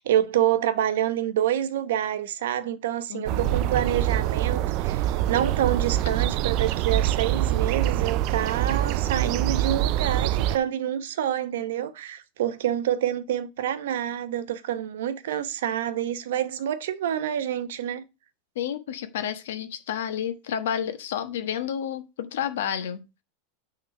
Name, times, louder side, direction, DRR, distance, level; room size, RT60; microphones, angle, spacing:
voice 1, 0.0-18.0, right 11 dB, 85° right, 1.0 m, -27 dB
voice 2, 3.1-3.7 18.5-23.0, left 9 dB, 85° left, 1.3 m, -30 dB
sound 1, 3.3-10.6, right 13 dB, 35° right, 0.3 m, -25 dB
9.4 x 3.7 x 5.8 m
supercardioid pair, 170°, 0 cm